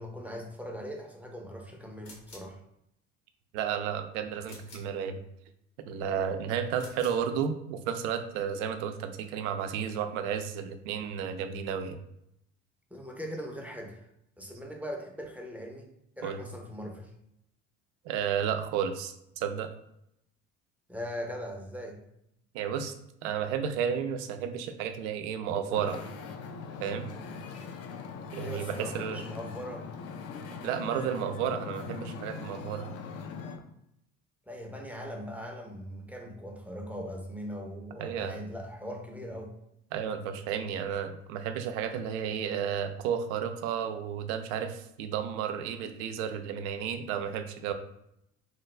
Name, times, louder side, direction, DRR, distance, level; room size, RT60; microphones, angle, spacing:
voice 1, 0.0-2.6 12.9-14.1 14.4-15.9 16.2-17.1 20.9-22.0 27.1-27.4 28.4-29.9 34.5-39.5, equal, 5° right, 1 dB, 0.6 m, -40 dB
sound 1, 2.0-2.6 4.4-5.0 6.7-7.3, left 1 dB, 75° left, 1.3 m, -50 dB
voice 2, 3.5-5.2 5.8-12.0 16.2-16.4 18.0-19.7 22.5-22.9 23.2-26.0 26.8-27.1 28.3-29.2 30.6-32.9 38.0-38.4 39.9-47.7, right 8 dB, 70° right, 8 dB, 0.5 m, -32 dB
Wind / Ocean, 25.7-33.6, left 5 dB, 45° left, 0.5 m, -41 dB
3.1 x 2.3 x 3.1 m, 0.78 s
hypercardioid pair, 60°, 37 cm